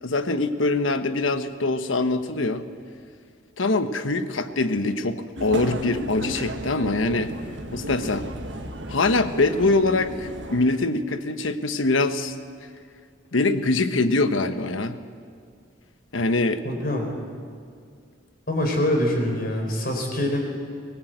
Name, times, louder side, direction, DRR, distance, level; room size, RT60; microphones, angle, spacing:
voice 1, 0.0-2.6 3.6-7.3 7.7-8.3 8.9-12.3 13.3-15.0 16.1-16.6, left 2 dB, 85° left, 9 dB, 1.2 m, -23 dB
sound 1, 5.4-10.7, right 1 dB, 65° right, 1.8 m, -34 dB
voice 2, 16.6-17.1 18.5-20.4, left 1 dB, 50° left, 2 dB, 4.6 m, -24 dB
24.0 x 18.0 x 8.1 m, 2.2 s
head